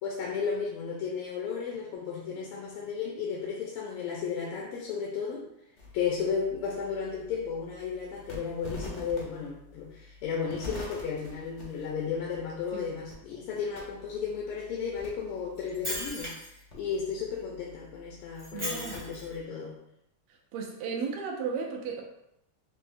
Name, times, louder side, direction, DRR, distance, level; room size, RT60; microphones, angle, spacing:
voice 1, 0.0-5.5 5.9-16.3 16.7-19.8, left 6 dB, 85° left, -2 dB, 1.5 m, -34 dB
sound 1, 5.8-19.4, left 1 dB, 70° left, 0.7 m, -47 dB
Shatter, 15.6-16.6 18.4-19.3, equal, 10° right, 0.4 m, -36 dB
voice 2, 18.5-19.0 20.5-22.0, right 5 dB, 90° right, 1 dB, 1.6 m, -34 dB
5.5 x 2.0 x 2.5 m, 0.82 s
omnidirectional pair, 2.4 m